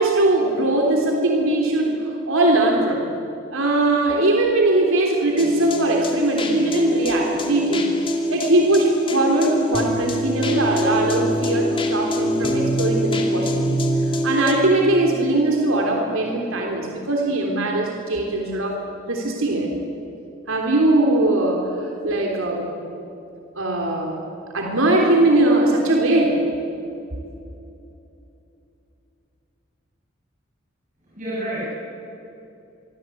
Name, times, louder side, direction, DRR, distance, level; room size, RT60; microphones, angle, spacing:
voice 1, 0.0-3.0 3.5-13.8 14.2-19.7 20.5-22.7 23.5-24.2 24.5-26.4, right 2 dB, 80° right, 0 dB, 3.3 m, -20 dB
sound 1, 5.4-14.5, equal, 25° left, 2.6 m, -24 dB
voice 2, 31.0-31.6, right 1 dB, 40° right, -8 dB, 8.0 m, -29 dB
26.5 x 24.0 x 8.5 m, 2.8 s
head